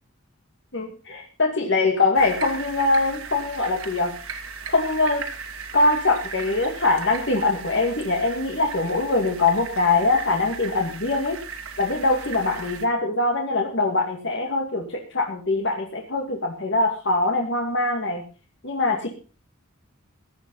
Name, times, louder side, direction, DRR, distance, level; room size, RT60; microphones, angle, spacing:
voice 1, 0.7-4.1 4.7-5.2 5.7-11.4 11.8-18.2 18.6-19.1, left 3 dB, 55° left, 1 dB, 2.4 m, -23 dB
sound 1, 2.1-12.9, right 5 dB, 80° right, 2.6 m, -37 dB
16.5 x 11.0 x 5.6 m, 0.36 s
head